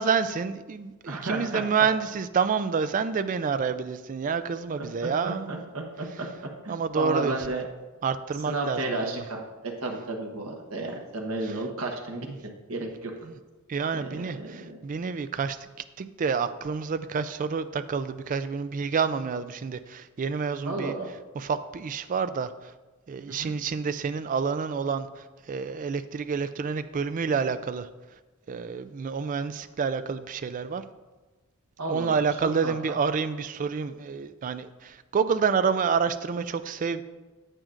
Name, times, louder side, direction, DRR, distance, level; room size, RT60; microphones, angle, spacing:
voice 1, 0.0-5.6 6.7-7.4 8.0-9.1 13.2-13.3 13.7-15.6 16.0-21.0 21.4-22.5 23.1-27.9 28.5-30.8 31.9-37.0, right 5 dB, 35° right, 12 dB, 0.3 m, -28 dB
voice 2, 1.1-1.6 4.8-7.6 8.5-13.1 13.9-14.8 20.7-21.1 23.3-23.5 31.8-32.1 32.4-33.0, right 2 dB, 70° right, 1 dB, 1.1 m, -33 dB
9.0 x 8.6 x 2.5 m, 1.2 s
head